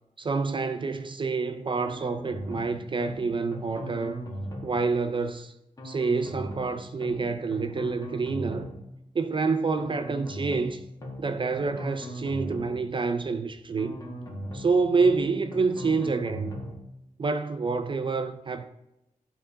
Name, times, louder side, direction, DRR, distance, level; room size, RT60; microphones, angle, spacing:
voice 1, 0.2-4.2 4.6-5.5 5.8-8.7 9.1-10.8 11.2-14.0 14.5-16.6 17.2-18.6, right 4 dB, 40° right, 0.4 m, -27 dB
sound 1, 1.8-2.7 3.0-3.2 3.5-4.8 5.8-6.7 7.0-7.2 7.5-8.8 9.8-10.7 11.0-11.2 11.5-12.8 13.8-14.7 15.0-15.2 15.5-16.8, equal, 25° left, 1.8 m, -38 dB
11.5 x 3.8 x 3.6 m
wide cardioid pair, 145°, 14 cm